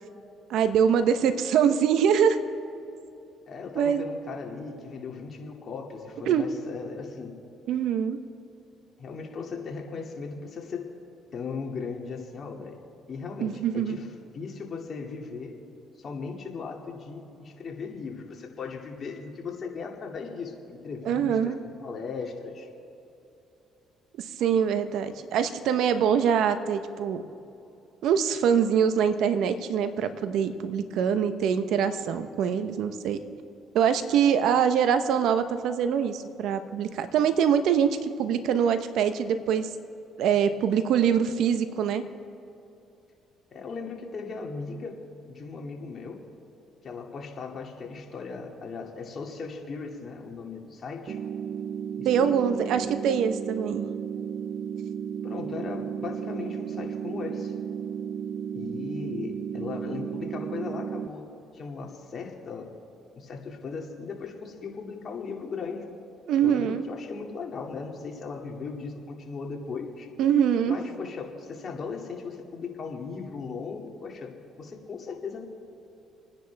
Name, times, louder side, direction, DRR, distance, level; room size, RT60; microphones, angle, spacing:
voice 1, 0.5-2.4 3.7-4.0 6.3-6.5 7.7-8.2 13.4-14.0 21.0-21.6 24.2-27.2 28.0-33.2 33.7-39.7 40.2-42.0 52.0-53.9 66.3-66.8 70.2-70.8, right 8 dB, 75° right, 10 dB, 1.0 m, -24 dB
voice 2, 3.5-7.3 9.0-10.9 11.3-12.8 13.1-14.1 14.3-15.6 16.0-21.5 21.8-22.7 43.5-46.3 46.8-51.2 52.0-52.4 55.2-57.5 58.5-62.7 63.1-65.9 66.4-70.1 70.7-74.3 74.6-75.4, left 5 dB, 50° left, 1 dB, 2.4 m, -37 dB
sound 1, 51.1-61.1, right 8 dB, 60° right, 0.6 m, -34 dB
29.0 x 10.0 x 3.5 m, 2.8 s
supercardioid pair, 70°, 0 cm